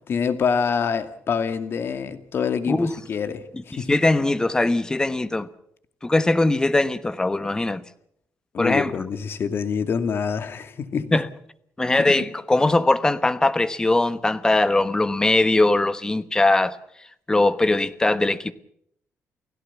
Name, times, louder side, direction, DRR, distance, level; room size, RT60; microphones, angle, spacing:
voice 1, 0.1-4.0 8.5-11.2, left 6 dB, 50° left, 2.2 m, -26 dB
voice 2, 3.7-5.5 6.0-7.8 8.6-8.9 11.1-11.3 11.8-16.8 17.3-18.5, left 2 dB, 15° left, 1.2 m, -20 dB
29.5 x 16.5 x 7.2 m
cardioid pair, 130°, 5 cm